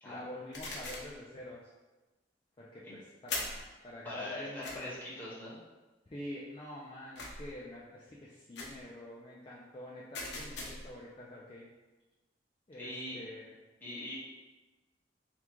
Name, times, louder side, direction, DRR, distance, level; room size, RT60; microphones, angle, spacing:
voice 1, 0.0-1.6 2.6-4.9 6.1-11.7 12.7-13.5, left 1 dB, 30° left, -6 dB, 0.5 m, -47 dB
sound 1, 0.5-1.2 3.3-3.7 4.6-4.8 7.2-7.5 8.5-8.8 10.1-10.9, left 2 dB, 70° left, 0.9 m, -40 dB
voice 2, 4.0-5.6 12.8-13.2 13.8-14.2, left 1 dB, 10° left, -9 dB, 1.3 m, -41 dB
3.6 x 2.4 x 4.5 m, 1.1 s
head